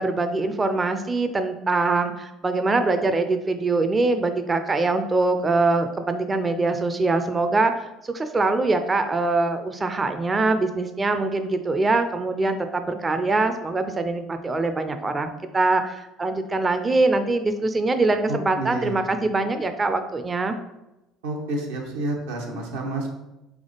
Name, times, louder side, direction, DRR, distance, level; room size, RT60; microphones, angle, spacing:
voice 1, 0.0-7.7 8.0-20.6, right 3 dB, 25° right, 8 dB, 0.4 m, -23 dB
voice 2, 18.3-19.0 21.2-23.1, right 2 dB, 90° right, 0 dB, 0.9 m, -29 dB
3.4 x 3.3 x 3.9 m, 0.95 s
hypercardioid pair, 75°, 0 cm